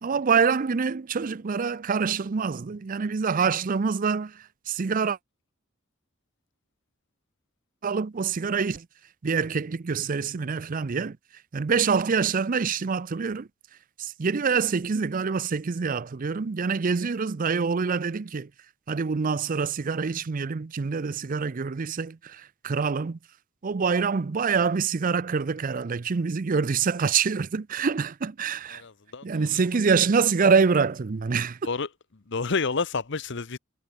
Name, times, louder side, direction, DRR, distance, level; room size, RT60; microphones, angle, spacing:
voice 1, 0.0-5.2 7.8-8.9 9.2-11.2 11.5-13.5 14.0-18.5 18.9-23.2 23.6-28.8 29.2-31.6, right 5 dB, 40° right, 0.5 m, -25 dB
voice 2, 28.7-29.8 30.4-30.5 31.6-31.9 32.3-33.6, left 4 dB, 60° left, 1.0 m, -30 dB
head